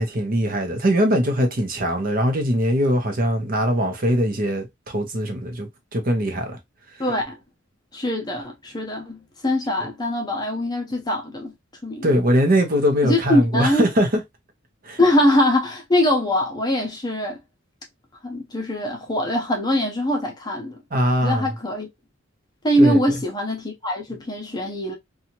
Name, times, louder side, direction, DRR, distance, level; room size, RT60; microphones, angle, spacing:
voice 1, 0.0-6.6 12.0-14.2 14.8-15.0 20.9-21.5 22.8-23.0, equal, 45° right, 0.8 m, -21 dB
voice 2, 7.0-7.4 7.9-11.5 11.8-12.2 13.0-13.9 15.0-17.4 18.2-20.8 21.2-21.9 22.6-24.9, left 1 dB, 20° left, 0.7 m, -22 dB
2.8 x 2.4 x 2.8 m
head